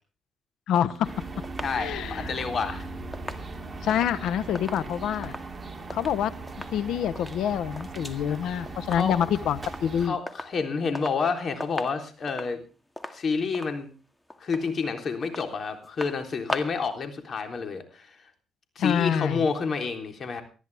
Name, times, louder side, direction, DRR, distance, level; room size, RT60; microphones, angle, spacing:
voice 1, 0.7-1.1 1.8-2.3 3.8-5.3 5.9-6.3 6.7-10.2 18.8-19.5, left 9 dB, 80° left, 16 dB, 1.1 m, -26 dB
sound 1, 0.8-6.2 6.5-6.8 7.1-8.2 8.5-9.3 9.6-9.9 10.3-11.3 11.6-16.9 17.2-17.3, left 1 dB, 10° left, 2.0 m, -40 dB
sound 2, 1.0-10.1, right 3 dB, 20° right, 3.2 m, -39 dB
voice 2, 1.6-2.9 8.3-8.4 8.9-9.2 10.0-12.6 13.1-13.9 14.4-18.3 18.8-20.4, left 5 dB, 50° left, 6 dB, 3.6 m, -29 dB
20.0 x 13.0 x 3.5 m, 0.35 s
cardioid pair, 90°, 0 cm